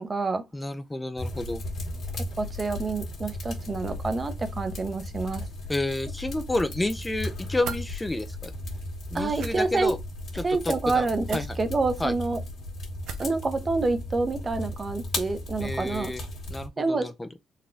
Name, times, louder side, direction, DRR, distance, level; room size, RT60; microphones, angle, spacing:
voice 1, 0.0-0.4 2.4-5.5 9.1-9.9 10.4-12.4 13.2-16.1 16.8-17.1, right 3 dB, 30° right, 0.7 m, -28 dB
voice 2, 0.5-1.6 5.7-8.5 9.1-10.0 10.4-11.1 11.3-11.6 12.0-12.1 15.6-16.2 16.5-17.3, left 2 dB, 15° left, 0.4 m, -30 dB
sound 1, 1.2-16.7, left 1 dB, 65° left, 1.6 m, -36 dB
sound 2, 7.6-7.8 9.3-9.5 11.3-11.5 13.0-13.4, right 6 dB, 85° right, 0.7 m, -36 dB
4.0 x 2.2 x 3.7 m
cardioid pair, 90°, 0 cm